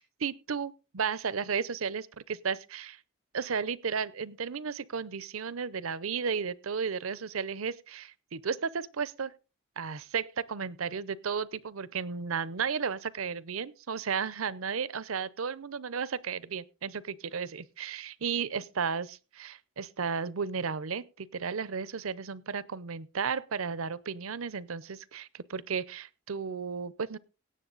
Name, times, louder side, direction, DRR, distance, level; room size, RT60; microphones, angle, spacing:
voice 1, 0.2-3.0 3.3-9.3 9.8-27.2, right 6 dB, 75° right, 19 dB, 0.7 m, -34 dB
17.5 x 7.4 x 3.9 m, 0.32 s
head